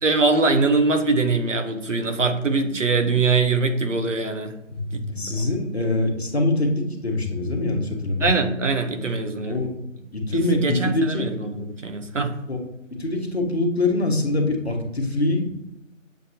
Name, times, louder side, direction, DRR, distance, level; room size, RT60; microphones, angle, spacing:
voice 1, 0.0-4.5 4.9-5.3 8.2-9.6 10.3-12.3, right 3 dB, 65° right, 6 dB, 0.9 m, -22 dB
voice 2, 4.7-8.3 9.4-9.8 10.1-11.3 12.5-12.6 12.9-15.5, left 2 dB, 55° left, 2 dB, 1.1 m, -24 dB
7.1 x 2.6 x 2.8 m, 0.90 s
figure-of-eight pair, 175°, 39 cm